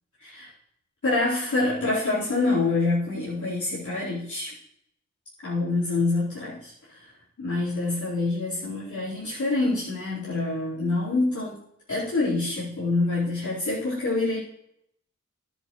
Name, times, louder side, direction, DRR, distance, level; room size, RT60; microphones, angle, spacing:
voice 1, 1.0-4.5 5.4-7.1 7.4-11.6 11.9-14.4, left 2 dB, 70° left, -12 dB, 4.5 m, -26 dB
11.0 x 9.7 x 3.2 m, 0.76 s
cardioid pair, 45°, 31 cm